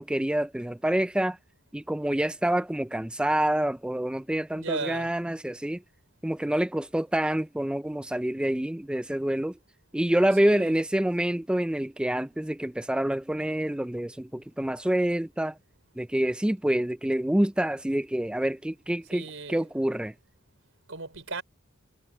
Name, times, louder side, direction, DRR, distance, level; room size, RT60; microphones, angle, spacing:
voice 1, 0.0-1.4 1.7-5.8 6.2-9.5 9.9-15.6 16.0-19.2 19.5-20.1, right 1 dB, 5° right, 0.3 m, -27 dB
voice 2, 4.5-5.1 10.4-10.8 19.1-19.7 20.9-21.4, right 3 dB, 85° right, 3.9 m, -36 dB
head